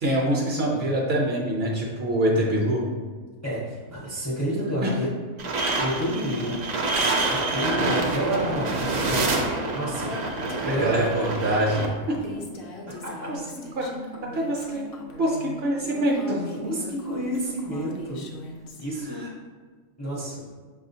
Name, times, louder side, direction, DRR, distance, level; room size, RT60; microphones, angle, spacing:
voice 1, 0.0-2.8 4.8-5.0 10.8-12.5 13.3-13.4 13.8-13.9 14.2-14.8 15.2-16.5, right 1 dB, 60° right, -2 dB, 0.7 m, -25 dB
voice 2, 3.4-5.1 5.8-6.6 7.2-8.8 9.5-10.1 10.6-11.1 12.9-13.3 16.6-18.3 18.8-19.3 20.0-20.4, equal, 20° left, -6 dB, 0.5 m, -29 dB
sound 1, 5.4-11.9, right 2 dB, 85° right, 0.3 m, -26 dB
Female speech woman speaking, 10.0-18.8, left 1 dB, 60° left, 0.6 m, -40 dB
5.9 x 2.4 x 2.6 m, 1.5 s
omnidirectional pair, 1.3 m